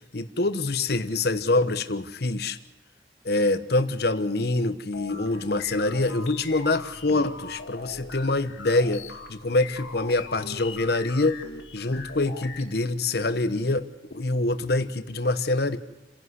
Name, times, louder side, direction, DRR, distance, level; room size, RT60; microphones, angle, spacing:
voice 1, 0.1-2.6 3.2-11.4 11.7-15.8, left 2 dB, 55° left, 11 dB, 1.0 m, -25 dB
sound 1, 4.9-12.6, left 4 dB, 85° left, 2.4 m, -41 dB
29.5 x 11.0 x 8.0 m, 1.0 s
head